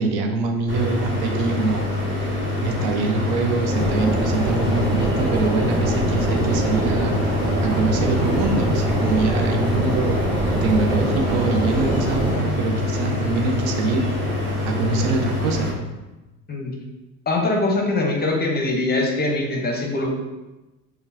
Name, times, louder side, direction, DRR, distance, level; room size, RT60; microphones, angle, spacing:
voice 1, 0.0-1.9 2.1-2.2 2.6-10.2 10.6-15.7, right 3 dB, 65° right, 3 dB, 0.6 m, -24 dB
sound 1, 0.7-15.7, left 2 dB, 30° right, 1.2 m, -25 dB
sound 2, 3.7-12.3, right 1 dB, 10° right, 0.7 m, -25 dB
voice 2, 17.3-20.1, left 2 dB, 25° left, 0 dB, 0.7 m, -22 dB
3.6 x 2.2 x 2.6 m, 1.1 s
hypercardioid pair, 70°, 40 cm